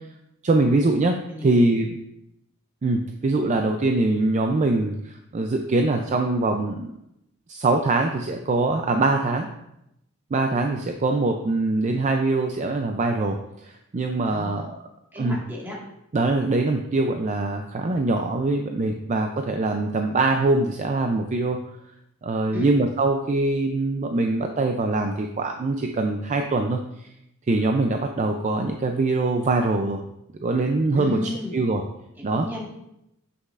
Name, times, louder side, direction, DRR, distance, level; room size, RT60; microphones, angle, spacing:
voice 1, 0.4-2.0 2.8-6.9 7.5-9.5 10.3-14.8 15.2-15.4 16.1-21.6 22.2-27.1 27.5-30.0 30.4-31.2 31.5-31.8 32.2-32.5, right 2 dB, 35° right, 4 dB, 0.4 m, -23 dB
voice 2, 1.3-1.7 14.3-14.7 15.1-15.8 22.5-22.7 30.9-31.6 32.3-32.7, left 1 dB, 10° right, -4 dB, 1.7 m, -33 dB
7.6 x 6.4 x 2.4 m, 0.82 s
head